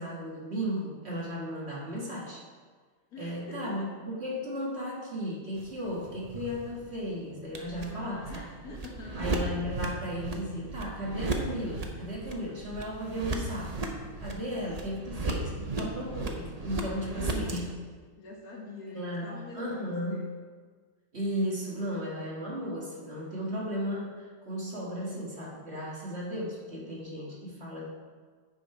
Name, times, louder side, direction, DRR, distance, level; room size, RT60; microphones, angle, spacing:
voice 1, 0.0-2.4 3.2-8.4 9.1-13.9 14.2-17.7 18.9-19.3 19.5-20.3 21.1-27.9, equal, 40° right, -4 dB, 1.7 m, -35 dB
voice 2, 3.1-3.9 7.7-9.3 14.9-15.1 17.0-17.7 18.2-20.3, left 3 dB, 60° left, -1 dB, 1.5 m, -45 dB
sound 1, 5.6-17.6, right 2 dB, 55° right, 0.4 m, -36 dB
9.3 x 5.4 x 4.7 m, 1.5 s
omnidirectional pair, 1.9 m